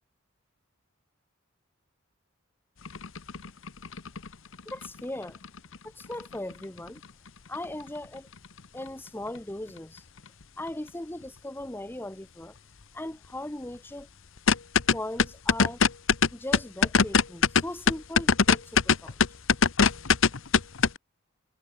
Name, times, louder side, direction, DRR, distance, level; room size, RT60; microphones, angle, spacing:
sound 1, 2.9-5.8 6.0-6.9 7.3-7.4 7.5-7.9 8.4-8.6 8.9-9.0 9.4-9.5 10.7-10.8 14.4-21.0, left 5 dB, 60° left, 1.0 m, -22 dB
voice 1, 4.6-5.4 5.8-7.0 7.5-8.3 8.7-10.1 10.6-12.5 12.9-14.1 14.9-15.8 16.3-19.2, left 1 dB, 10° left, 0.9 m, -38 dB
head